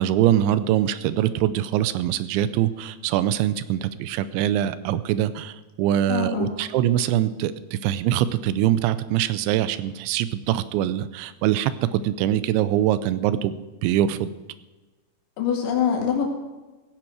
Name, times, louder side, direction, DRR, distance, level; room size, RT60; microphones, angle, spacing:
voice 1, 0.0-13.5 13.8-14.3, right 11 dB, 90° right, 14 dB, 3.0 m, -23 dB
voice 2, 6.1-6.5 15.4-16.2, left 8 dB, 80° left, 2 dB, 4.4 m, -24 dB
16.5 x 10.5 x 4.8 m, 1.2 s
omnidirectional pair, 5.2 m